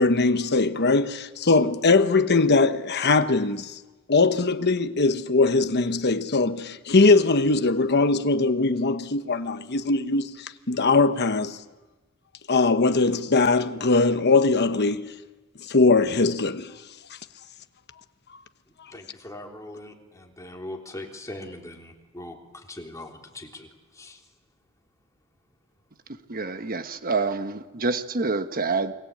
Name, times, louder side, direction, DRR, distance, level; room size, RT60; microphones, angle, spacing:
voice 1, 0.0-3.8 4.1-11.6 12.5-15.1 15.7-16.7, left 3 dB, 50° left, 1.1 m, -21 dB
voice 2, 18.9-22.4 22.7-23.7 23.9-24.2, left 1 dB, 15° left, 3.5 m, -40 dB
voice 3, 26.3-28.9, right 3 dB, 40° right, 1.3 m, -27 dB
29.0 x 23.0 x 8.6 m
head